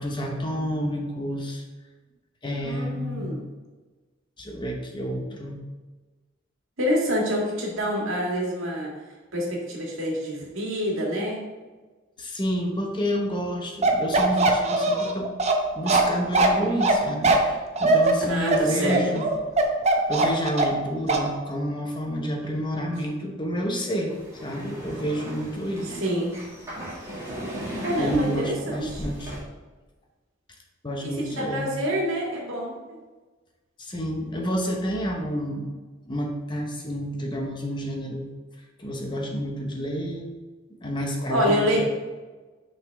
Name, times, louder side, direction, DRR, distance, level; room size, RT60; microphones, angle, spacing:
voice 1, 0.0-1.6 2.4-3.4 4.4-5.6 12.2-15.3 15.7-19.3 20.1-24.1 24.4-26.0 28.0-29.4 30.8-31.7 33.8-35.7 36.1-38.3 38.8-40.3 40.8-41.8, equal, 25° left, 1 dB, 0.8 m, -29 dB
voice 2, 2.6-3.4 6.8-8.9 9.3-11.4 18.3-19.0 26.0-26.3 27.8-29.0 31.0-33.0 41.3-41.8, equal, 85° right, -2 dB, 1.9 m, -26 dB
Bark, 13.8-20.8 21.1-21.3, right 3 dB, 35° right, 0.7 m, -21 dB
sound 1, 24.1-29.4, equal, 15° right, 2.1 m, -37 dB
6.0 x 5.8 x 3.4 m, 1.3 s
head